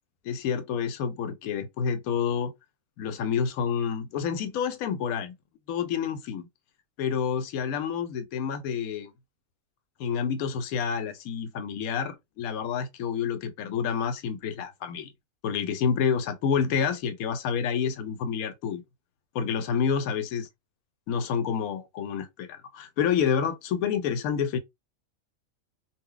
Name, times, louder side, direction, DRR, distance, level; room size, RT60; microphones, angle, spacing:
voice 1, 0.2-2.5 3.0-5.4 5.7-6.5 7.0-9.1 10.0-15.1 15.4-18.8 19.3-20.5 21.1-24.6, left 7 dB, 80° left, 1.0 m, -28 dB
2.3 x 2.1 x 3.7 m
omnidirectional pair, 1.5 m